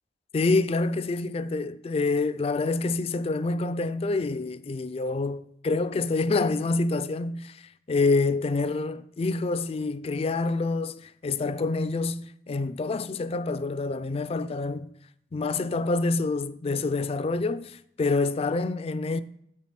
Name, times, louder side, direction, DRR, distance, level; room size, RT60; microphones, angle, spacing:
voice 1, 0.3-14.9 15.3-19.2, left 3 dB, 35° left, 0.3 m, -27 dB
7.3 x 6.8 x 5.8 m
head